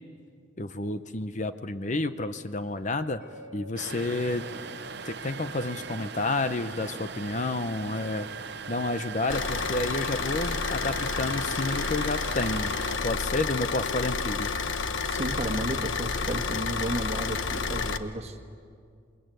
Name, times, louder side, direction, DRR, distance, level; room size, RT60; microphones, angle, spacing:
voice 1, 0.6-3.2 3.5-4.5 5.1-12.7 13.0-14.5, left 2 dB, 40° left, 10 dB, 0.7 m, -30 dB
Mallet percussion, 3.2-6.2, left 5 dB, 55° left, 7.5 m, -50 dB
sound 1, 3.8-13.0, right 5 dB, 55° right, 0.8 m, -39 dB
Car / Idling, 9.3-18.0, left 5 dB, 85° left, 1.0 m, -30 dB
voice 2, 15.1-18.4, right 1 dB, 35° right, 3 dB, 1.6 m, -33 dB
27.5 x 21.5 x 9.1 m, 2.3 s
head